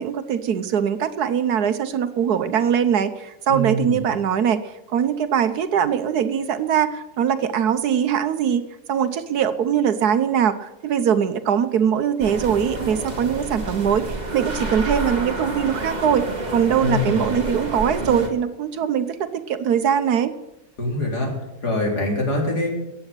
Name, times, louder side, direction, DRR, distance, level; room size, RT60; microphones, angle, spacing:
voice 1, 0.0-8.6 8.9-16.2 16.5-20.3, right 8 dB, 65° right, 11 dB, 1.3 m, -22 dB
voice 2, 3.5-4.0 16.8-17.3 20.8-21.3 21.6-22.7, left 1 dB, 65° left, 0 dB, 4.5 m, -24 dB
sound 1, 12.2-18.3, right 2 dB, 25° right, 2.0 m, -29 dB
14.5 x 8.9 x 8.8 m, 0.93 s
omnidirectional pair, 1.9 m